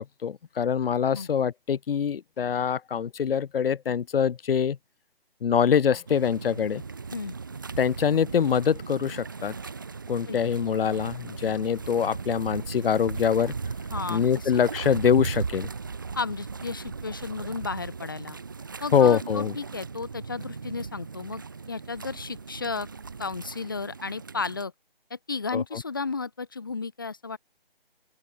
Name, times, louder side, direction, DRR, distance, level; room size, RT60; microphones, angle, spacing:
voice 1, 0.0-4.8 5.4-6.8 7.8-9.5 10.1-13.5 14.1-15.7 18.9-19.5 25.5-25.8, left 7 dB, 70° left, 0.6 m, -24 dB
sound 1, 6.1-24.7, right 5 dB, 20° right, 0.7 m, -37 dB
voice 2, 13.9-14.5 16.2-18.4 18.8-21.4 21.7-22.9 23.2-24.7 25.1-27.4, left 4 dB, 20° left, 0.7 m, -33 dB
open air
hypercardioid pair, 170°, 30 cm